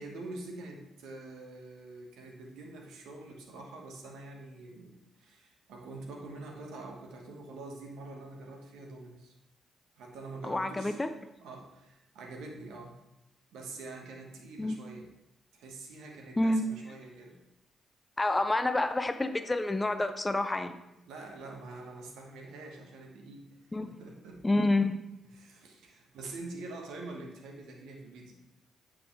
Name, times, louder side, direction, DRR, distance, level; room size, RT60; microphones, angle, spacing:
voice 1, 0.0-9.3 10.0-11.0 11.4-13.0 13.5-15.1 15.5-17.4 21.0-23.5 23.7-24.6 25.3-28.4, right 2 dB, 65° right, 2 dB, 1.2 m, -45 dB
voice 2, 10.4-11.1 14.6-14.8 16.4-16.6 18.2-20.7 23.7-23.9 24.4-25.0, left 2 dB, 20° left, 9 dB, 0.6 m, -28 dB
8.3 x 4.9 x 3.6 m, 0.91 s
figure-of-eight pair, 40°, 0 cm